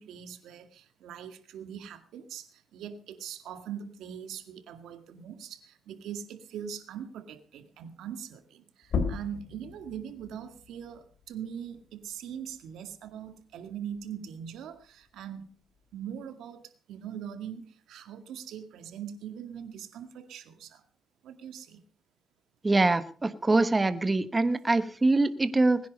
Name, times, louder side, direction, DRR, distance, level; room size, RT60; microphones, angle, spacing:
voice 1, 0.0-15.5 15.9-20.8 21.2-21.8, right 8 dB, 90° right, 8 dB, 2.0 m, -41 dB
sound 1, 8.8-14.0 14.4-16.2, left 5 dB, 65° left, 3.2 m, -38 dB
voice 2, 22.6-25.8, right 2 dB, 20° right, 12 dB, 1.3 m, -24 dB
20.5 x 10.5 x 5.3 m, 0.41 s
cardioid pair, 105°, 0 cm